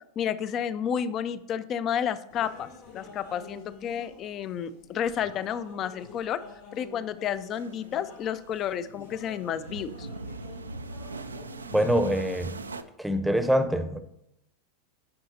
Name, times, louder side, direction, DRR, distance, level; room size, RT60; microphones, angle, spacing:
voice 1, 0.2-2.7 2.9-6.4 6.7-10.1, left 8 dB, 35° left, 15 dB, 0.4 m, -31 dB
sound 1, 2.3-12.8, left 4 dB, 60° left, 2.7 m, -49 dB
sound 2, 7.6-12.8, right 3 dB, 85° right, 0.4 m, -41 dB
voice 2, 11.7-12.6 13.0-14.0, equal, ahead, 9 dB, 0.7 m, -24 dB
10.0 x 5.6 x 2.8 m, 0.80 s
figure-of-eight pair, 90°, 0 cm